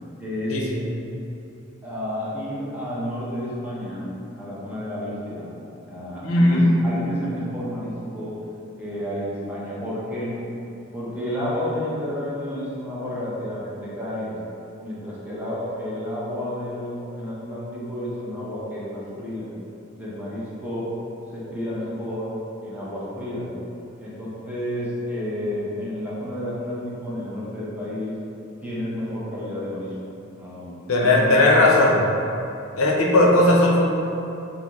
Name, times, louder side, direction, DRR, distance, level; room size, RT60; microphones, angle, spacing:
voice 1, 0.2-0.6 1.8-5.6 5.9-8.5 8.8-10.4 10.9-14.4 14.8-19.5 19.9-21.0 21.3-22.3 22.6-23.5 24.0-28.1 28.6-29.9 30.4-31.5, equal, 10° right, -8 dB, 0.7 m, -31 dB
voice 2, 6.2-6.7 30.9-31.9 32.8-33.9, left 1 dB, 85° left, -2 dB, 0.5 m, -17 dB
3.7 x 2.5 x 2.9 m, 2.8 s
head